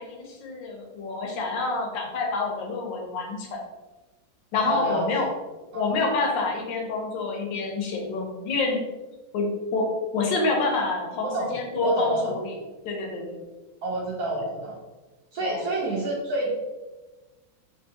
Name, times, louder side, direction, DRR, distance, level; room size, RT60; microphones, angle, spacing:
voice 1, 0.0-3.6 4.5-5.3 5.7-8.8 9.3-9.9 10.1-12.5 12.8-13.4 14.4-14.5 15.4-15.6, left 3 dB, 75° left, 0 dB, 1.3 m, -27 dB
voice 2, 4.7-5.1 5.7-5.9 11.2-11.6 11.8-12.4 13.8-14.8 15.3-16.5, right 2 dB, 70° right, -3 dB, 0.9 m, -28 dB
3.4 x 2.7 x 2.7 m, 1.2 s
omnidirectional pair, 2.1 m